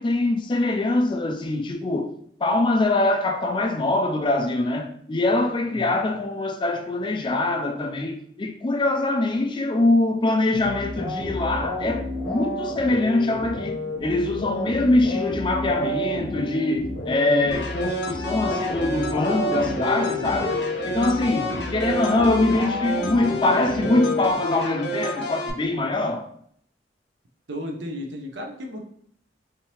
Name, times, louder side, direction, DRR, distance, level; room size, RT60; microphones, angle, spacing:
voice 1, 0.0-2.1 2.4-20.6 20.8-26.3, left 2 dB, 25° left, 0.4 m, -23 dB
voice 2, 5.7-6.0 21.3-21.7 27.5-28.8, equal, 75° right, 0.7 m, -34 dB
sound 1, 10.5-24.8, left 1 dB, 85° left, 1.0 m, -30 dB
sound 2, 17.5-25.5, equal, 70° left, 0.6 m, -31 dB
3.5 x 2.7 x 2.9 m
head